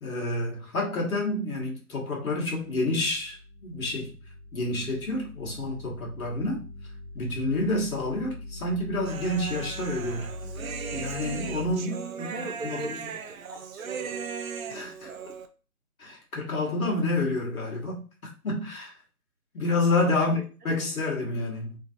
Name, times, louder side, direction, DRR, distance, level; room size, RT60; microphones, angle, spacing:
voice 1, 0.0-4.1 4.5-6.6 7.1-10.3 10.9-13.0 14.7-15.1 16.0-18.0 18.4-18.9 19.5-20.4 20.6-21.8, left 2 dB, 65° left, 1.5 m, -29 dB
sound 1, 2.7-11.8, left 1 dB, 45° left, 1.1 m, -42 dB
Human voice, 9.1-15.5, right 6 dB, 60° right, 0.5 m, -37 dB
voice 2, 12.3-14.3 20.1-20.5, right 3 dB, 80° right, 1.1 m, -41 dB
3.1 x 2.7 x 2.4 m
figure-of-eight pair, 160°, 46 cm